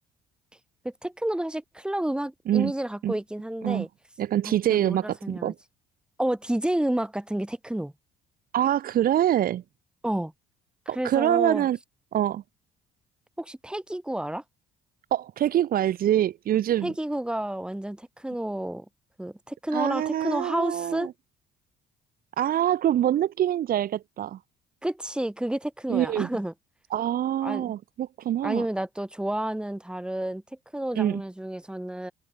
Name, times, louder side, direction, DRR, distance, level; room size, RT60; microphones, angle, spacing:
voice 1, 0.8-3.9 4.4-5.5 6.2-7.9 10.0-10.3 10.9-11.7 13.4-14.4 16.8-18.9 19.2-21.1 24.8-26.5 27.4-27.7 28.4-30.4 30.7-32.1, right 1 dB, 5° right, 7.5 m, -30 dB
voice 2, 4.2-5.5 8.5-9.6 10.9-11.8 12.1-12.4 15.1-16.9 19.7-21.1 22.4-24.4 25.9-26.3 26.9-28.6 31.0-31.2, right 11 dB, 60° right, 2.4 m, -25 dB
cardioid pair, 110°, 17 cm